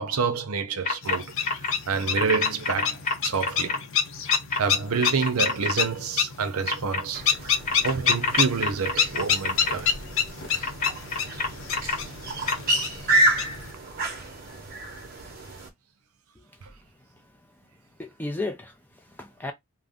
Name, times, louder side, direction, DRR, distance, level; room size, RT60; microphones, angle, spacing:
voice 1, 0.0-1.5 1.9-3.8 4.6-7.2 7.8-9.9, right 5 dB, 80° right, 0.6 m, -28 dB
sound 1, 0.9-1.2 1.4-1.7 2.2-3.8 4.3-4.6 5.0-5.7 6.7-7.0 7.7-9.7 10.6-12.0 12.5-12.6, left 4 dB, 35° left, 0.9 m, -27 dB
sound 2, 1.0-13.7, left 7 dB, 60° left, 0.5 m, -28 dB
sound 3, 7.1-15.7, right 1 dB, 40° right, 0.9 m, -30 dB
voice 2, 17.1-17.6 18.0-19.5, left 2 dB, 10° left, 0.3 m, -36 dB
2.6 x 2.0 x 3.5 m
head